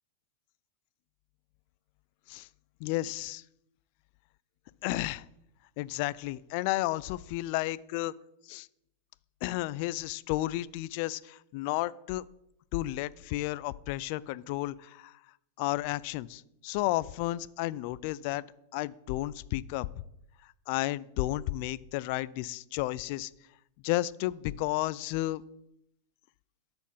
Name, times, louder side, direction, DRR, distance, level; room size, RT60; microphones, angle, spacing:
voice 1, 2.8-3.4 4.8-5.2 5.8-8.1 8.5-8.7 9.4-12.2 12.7-15.1 15.6-18.5 18.7-19.9 20.7-23.3 23.8-25.4, left 17 dB, 55° left, 20 dB, 0.4 m, -32 dB
12.5 x 4.4 x 5.5 m, 0.81 s
hypercardioid pair, 110°, 0 cm